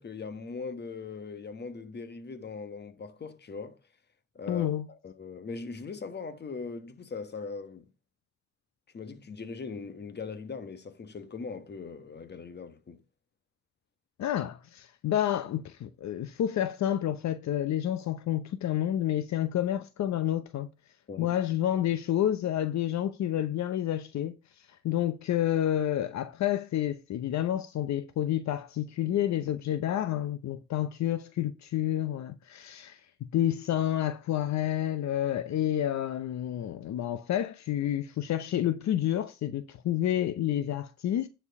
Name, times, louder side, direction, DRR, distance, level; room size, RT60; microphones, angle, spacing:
voice 1, 0.0-3.8 4.3-7.9 8.9-13.0 21.1-21.4, left 4 dB, 35° left, 1.3 m, -40 dB
voice 2, 4.5-4.9 14.2-20.7 21.2-24.4 24.8-33.0 33.3-41.3, left 11 dB, 65° left, 0.8 m, -29 dB
9.8 x 4.5 x 5.3 m
cardioid pair, 90°, 30 cm